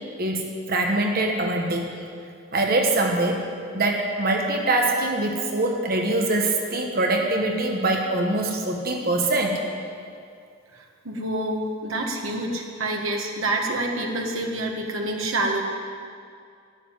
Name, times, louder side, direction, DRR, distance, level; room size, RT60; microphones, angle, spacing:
voice 1, 0.2-2.0 2.5-3.5 3.7-9.6, right 2 dB, 45° right, 2 dB, 1.2 m, -23 dB
voice 2, 10.7-15.6, right 2 dB, 75° right, 1 dB, 1.7 m, -27 dB
12.5 x 7.7 x 9.2 m, 2.3 s
head